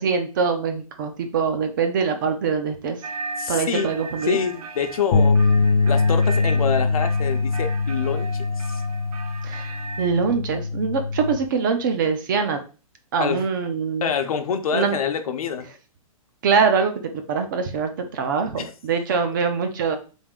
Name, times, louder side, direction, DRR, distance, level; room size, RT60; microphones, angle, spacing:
voice 1, 0.0-3.0 3.5-4.4 9.4-12.6 13.1-14.1 14.7-15.0 16.4-20.0, right 5 dB, 35° right, 0.5 m, -23 dB
sound 1, 3.0-10.1, right 3 dB, 90° right, 0.5 m, -36 dB
voice 2, 3.4-3.9 4.3-5.4 5.9-8.8 13.2-13.4 14.0-15.7 18.6-18.7, left 7 dB, 75° left, 0.7 m, -26 dB
sound 2, 5.1-11.4, left 4 dB, 35° left, 0.4 m, -22 dB
3.5 x 2.6 x 3.6 m
hypercardioid pair, 170°, 18 cm